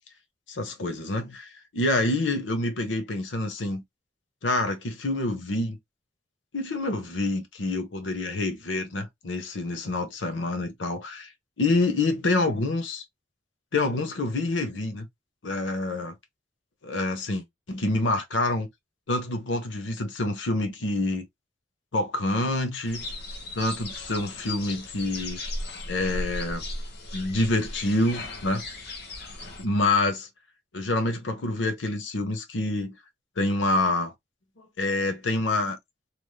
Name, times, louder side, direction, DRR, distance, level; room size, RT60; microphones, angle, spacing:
voice 1, 0.5-3.8 4.4-5.8 6.5-11.3 11.6-13.0 13.7-15.1 15.4-16.1 16.8-18.7 19.1-21.3 21.9-23.0 23.5-25.4 25.9-26.6 27.1-28.6 29.6-30.3 30.7-33.0 33.4-34.1 34.8-35.8, left 2 dB, 80° left, 0.8 m, -27 dB
sound 1, 22.8-29.6, left 2 dB, 60° left, 0.9 m, -36 dB
3.2 x 2.5 x 2.2 m
head